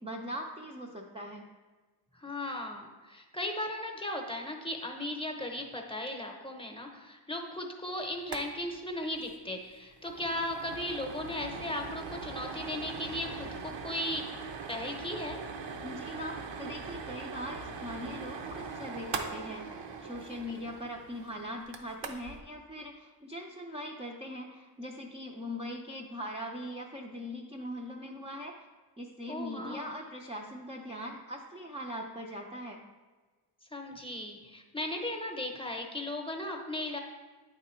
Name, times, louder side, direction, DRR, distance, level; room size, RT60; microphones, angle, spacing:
voice 1, 0.0-1.5 15.8-19.7 20.0-28.6 29.0-32.8, equal, 15° right, -1 dB, 0.4 m, -41 dB
voice 2, 2.1-14.2 14.7-15.4 29.3-29.9 33.7-37.0, left 1 dB, 15° left, 2 dB, 0.8 m, -36 dB
sound 1, 8.2-8.5 8.7-8.8 9.2-9.3 9.7-22.4, right 5 dB, 85° right, 0.7 m, -41 dB
9.1 x 3.7 x 4.3 m, 1.3 s
wide cardioid pair, 125°, 43 cm